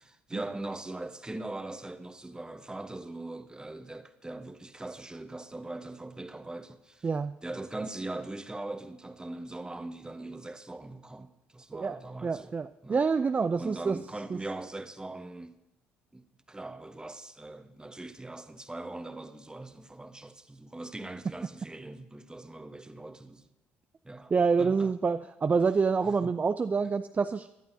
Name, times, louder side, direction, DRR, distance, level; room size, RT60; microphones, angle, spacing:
voice 1, 0.0-7.1 7.4-12.6 12.8-13.0 13.6-15.6 16.1-23.5 24.0-24.3 24.6-24.9 26.1-26.3, right 2 dB, 15° right, 1.1 m, -41 dB
voice 2, 7.0-7.4 11.7-14.0 14.3-14.4 24.3-27.5, right 5 dB, 30° right, 0.4 m, -27 dB
18.5 x 11.0 x 2.8 m
hypercardioid pair, 55°, 5 cm